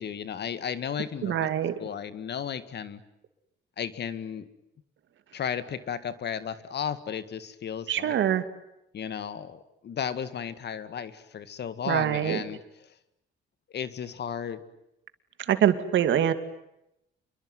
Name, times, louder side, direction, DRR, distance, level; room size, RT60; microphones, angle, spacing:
voice 1, 0.0-1.5 1.8-3.0 3.8-4.5 5.3-8.1 8.9-12.6 13.7-14.6, left 8 dB, 60° left, 13 dB, 2.0 m, -34 dB
voice 2, 1.2-1.7 7.9-8.4 11.9-12.4 15.4-16.3, right 10 dB, 70° right, 10 dB, 2.4 m, -24 dB
27.0 x 23.0 x 9.5 m, 0.85 s
cardioid pair, 90°, 20 cm